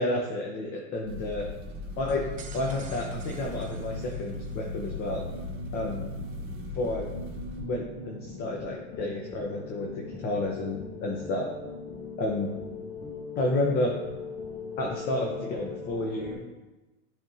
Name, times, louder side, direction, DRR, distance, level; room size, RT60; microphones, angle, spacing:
voice 1, 0.0-1.5 2.0-2.2 2.5-5.2 5.7-6.1 6.7-7.1 7.6-11.5 12.2-12.5 13.4-13.9 14.8-16.4, left 2 dB, 30° left, 0 dB, 0.7 m, -30 dB
sound 1, 1.1-7.6, left 2 dB, 40° right, 1.4 m, -38 dB
sound 2, 1.9-16.4, left 3 dB, 55° left, 1.6 m, -41 dB
sound 3, 2.1-4.6, right 7 dB, 25° right, 0.4 m, -50 dB
10.0 x 3.5 x 2.7 m, 1.1 s
supercardioid pair, 150°, 31 cm